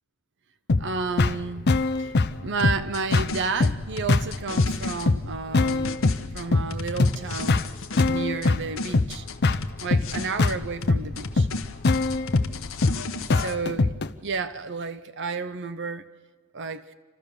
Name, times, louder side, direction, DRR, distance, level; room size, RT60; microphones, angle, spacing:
sound 1, 0.7-14.1, left 3 dB, 50° left, 0.7 m, -24 dB
voice 1, 0.8-1.7 2.0-2.1 2.4-6.1 6.3-7.6 8.0-9.3 9.8-11.5 13.3-13.9 14.2-16.1 16.5-16.9, right 4 dB, 60° right, 0.8 m, -31 dB
sound 2, 2.6-5.1 5.7-8.5 8.8-10.6 10.8-13.5, left 3 dB, 70° left, 1.1 m, -35 dB
29.5 x 13.0 x 7.0 m
head